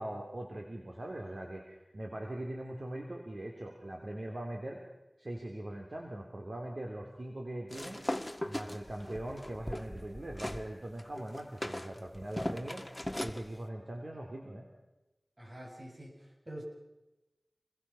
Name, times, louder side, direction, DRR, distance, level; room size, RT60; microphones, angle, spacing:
voice 1, 0.0-4.8 5.2-8.1 8.4-12.8 13.2-14.7, right 1 dB, 65° right, 1 dB, 3.1 m, -41 dB
sound 1, 7.7-10.6 11.0-13.4, left 1 dB, 15° left, 1.7 m, -39 dB
voice 2, 15.4-16.6, right 1 dB, 45° right, -1 dB, 7.1 m, -46 dB
27.5 x 21.5 x 5.7 m, 1.0 s
wide cardioid pair, 45°, 0 cm